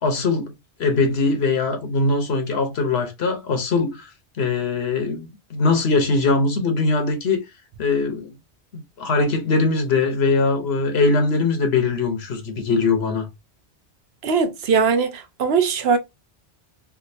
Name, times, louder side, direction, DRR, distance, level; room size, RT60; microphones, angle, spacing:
voice 1, 0.0-0.5 0.8-4.1 4.4-7.4 7.8-8.3 8.7-13.3, left 3 dB, 70° left, 1.2 m, -21 dB
voice 2, 14.2-16.0, right 5 dB, 70° right, 0.9 m, -20 dB
3.4 x 2.6 x 2.6 m
omnidirectional pair, 1.1 m